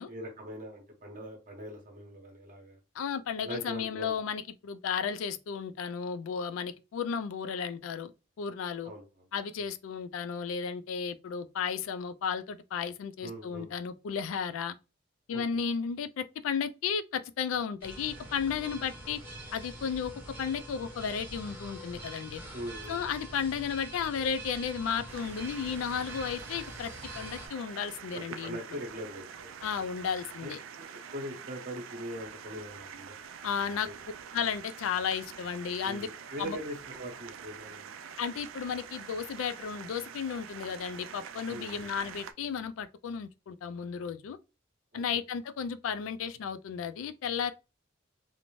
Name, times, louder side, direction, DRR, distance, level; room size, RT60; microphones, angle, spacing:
voice 1, 0.1-2.8 3.4-4.1 8.8-9.3 9.6-9.7 13.2-13.7 15.3-15.4 22.5-23.0 28.1-29.7 30.4-30.5 30.8-30.9 31.1-33.2 33.7-33.9 35.8-37.9 41.5-41.9 44.9-45.0, equal, 40° right, 0.7 m, -42 dB
voice 2, 3.0-8.1 8.4-8.9 9.3-14.8 15.3-19.2 19.5-20.1 20.4-22.4 22.9-28.6 29.6-30.6 33.4-33.9 34.3-36.1 36.4-36.6 38.2-44.4 44.9-47.5, left 7 dB, 90° left, 0.3 m, -34 dB
sound 1, 17.8-27.5, right 1 dB, 10° right, 0.8 m, -45 dB
sound 2, 25.1-42.3, right 7 dB, 85° right, 0.3 m, -46 dB
2.6 x 2.0 x 3.0 m
head